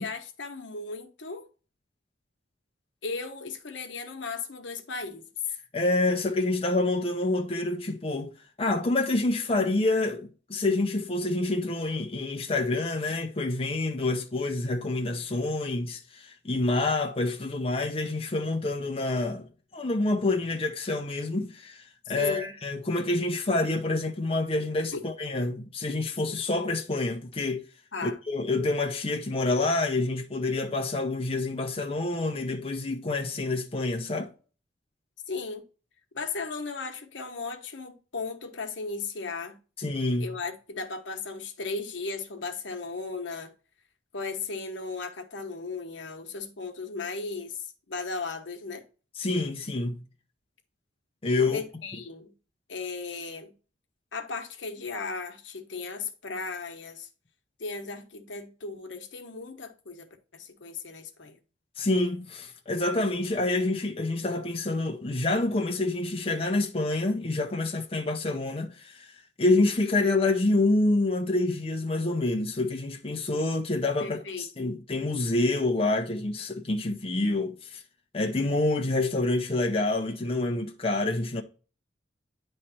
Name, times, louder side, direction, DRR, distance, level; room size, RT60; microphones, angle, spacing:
voice 1, 0.0-1.5 3.0-5.2 22.0-22.6 24.9-25.0 27.9-28.2 35.3-35.6 36.1-39.6 40.2-43.5 44.1-48.9 51.4-52.3 52.7-53.5 54.1-57.1 57.6-60.1 60.3-61.4 74.0-74.7, left 4 dB, 75° left, 1.0 m, -36 dB
voice 2, 5.7-8.3 8.6-27.6 28.0-34.3 39.8-40.3 49.2-50.0 51.2-51.6 61.8-77.8 78.1-81.4, left 2 dB, 30° left, 0.7 m, -27 dB
9.8 x 3.3 x 4.2 m
head